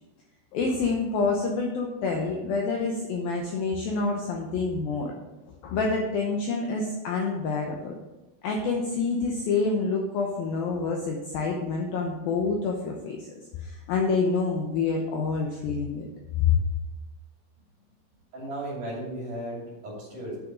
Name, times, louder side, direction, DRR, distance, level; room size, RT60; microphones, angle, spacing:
voice 1, 0.5-5.1 5.6-7.9 8.4-13.3 13.6-16.1 16.4-16.5, left 4 dB, 75° left, 0 dB, 2.2 m, -27 dB
voice 2, 18.3-20.4, right 1 dB, 50° right, -4 dB, 3.9 m, -35 dB
9.1 x 6.4 x 5.1 m, 1.1 s
omnidirectional pair, 5.2 m